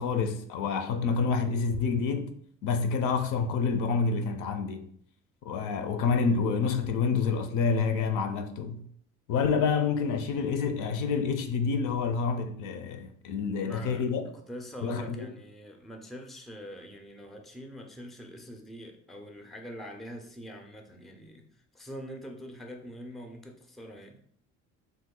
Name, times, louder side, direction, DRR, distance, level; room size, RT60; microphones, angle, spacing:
voice 1, 0.0-2.3 2.6-4.9 5.4-8.8 9.3-14.2 14.8-15.3, left 5 dB, 70° left, 0.5 m, -28 dB
voice 2, 13.6-14.1 14.3-21.5 21.7-24.2, equal, ahead, 0.4 m, -44 dB
3.1 x 2.1 x 3.6 m
cardioid pair, 95°, 32 cm